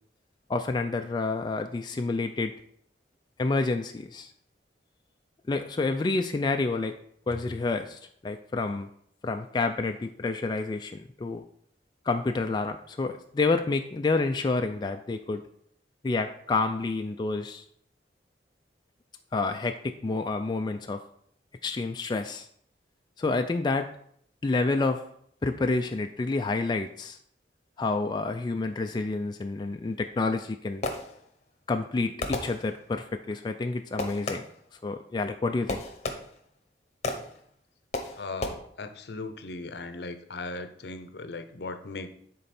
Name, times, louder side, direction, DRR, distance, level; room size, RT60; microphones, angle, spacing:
voice 1, 0.5-2.5 3.4-4.3 5.5-6.9 7.3-8.9 9.2-11.4 12.1-15.4 16.0-17.6 19.3-21.0 21.6-22.5 23.2-23.9 24.4-25.0 25.4-27.2 27.8-30.9 31.7-34.5 34.8-35.8, left 3 dB, 25° left, 5 dB, 0.3 m, -29 dB
Fireworks, 30.3-31.5 32.2-33.1 34.0-34.7 35.7-36.6 37.0-37.5 37.9-38.5, left 2 dB, 40° left, 0.9 m, -34 dB
voice 2, 38.2-42.1, left 3 dB, 65° left, 9 dB, 0.7 m, -38 dB
10.0 x 4.0 x 4.2 m, 0.68 s
head